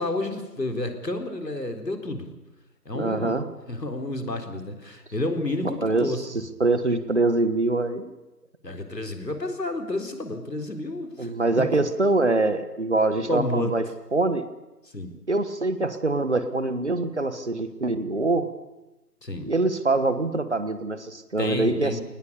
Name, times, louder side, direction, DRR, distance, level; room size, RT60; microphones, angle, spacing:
voice 1, 0.0-2.3 2.8-6.2 8.6-11.3 11.7-11.8 13.3-13.7 14.9-15.1 19.2-19.5 21.4-22.0, left 1 dB, 85° left, 5 dB, 4.2 m, -30 dB
voice 2, 2.9-3.4 5.6-6.1 6.6-8.1 11.2-13.8 14.1-14.4 15.3-18.5 19.4-22.0, right 2 dB, 45° right, 11 dB, 1.6 m, -24 dB
21.0 x 19.5 x 8.5 m, 1.0 s
figure-of-eight pair, 170°, 48 cm